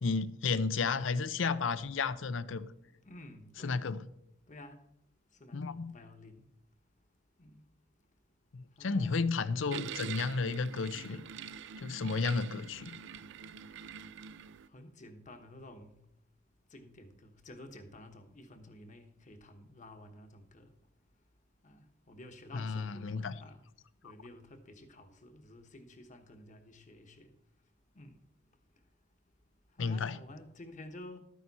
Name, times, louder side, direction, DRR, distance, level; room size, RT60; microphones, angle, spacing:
voice 1, 0.0-2.7 3.6-4.0 5.5-5.9 8.5-11.2 11.8-13.0 22.5-23.4 29.8-30.2, left 4 dB, 70° left, 0.6 m, -32 dB
voice 2, 3.0-3.9 4.5-4.8 5.4-6.4 7.4-7.6 8.8-9.2 12.1-12.2 14.7-16.0 16.7-20.7 21.6-23.6 24.0-27.3 28.0-28.2 29.8-31.2, left 1 dB, 40° left, 1.2 m, -52 dB
sound 1, 9.7-14.7, right 7 dB, 65° right, 0.4 m, -45 dB
12.5 x 9.2 x 4.1 m
head